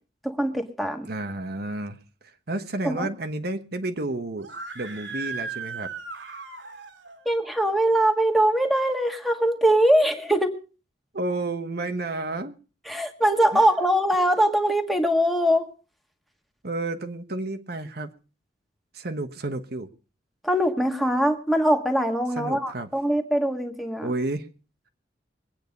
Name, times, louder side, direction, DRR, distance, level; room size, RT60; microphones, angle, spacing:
voice 1, 0.2-1.1 2.8-3.1 7.3-10.6 12.9-15.7 20.4-24.1, right 1 dB, ahead, 4 dB, 1.7 m, -22 dB
voice 2, 1.0-2.0 2.5-4.5 4.7-5.9 11.1-12.5 13.5-13.6 16.6-18.1 18.9-19.9 22.4-22.9 24.0-24.5, right 2 dB, 60° right, 8 dB, 1.2 m, -31 dB
Screaming, 4.4-7.2, right 4 dB, 85° right, 2.5 m, -36 dB
22.0 x 9.1 x 5.3 m, 0.36 s
head